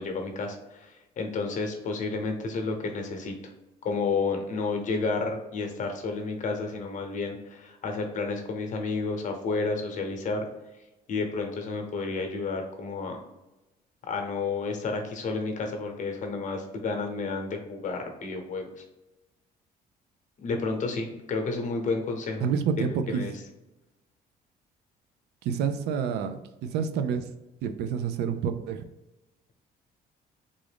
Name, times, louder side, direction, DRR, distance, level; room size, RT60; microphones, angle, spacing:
voice 1, 0.0-3.3 3.8-10.4 11.1-13.2 14.1-18.7 20.4-22.5 23.1-23.3, left 4 dB, 45° left, 4 dB, 0.8 m, -31 dB
voice 2, 22.4-23.3 25.4-27.2 27.6-28.8, right 7 dB, 80° right, 8 dB, 0.4 m, -28 dB
3.6 x 2.5 x 3.4 m, 1.0 s
cardioid pair, 110°, 17 cm